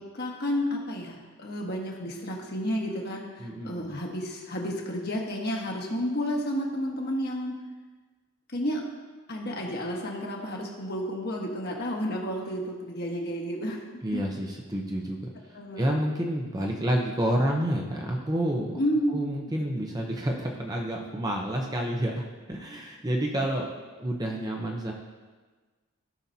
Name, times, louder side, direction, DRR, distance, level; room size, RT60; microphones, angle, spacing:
voice 1, 0.1-7.6 8.5-8.8 9.3-13.8 14.1-14.2 15.5-15.9 18.8-19.3, equal, 45° left, -1 dB, 1.5 m, -31 dB
voice 2, 3.4-4.0 14.0-15.2 15.8-18.8 19.1-22.2 22.5-23.7 24.0-24.9, right 1 dB, 15° right, 0 dB, 0.8 m, -29 dB
16.0 x 5.8 x 2.8 m, 1.3 s
head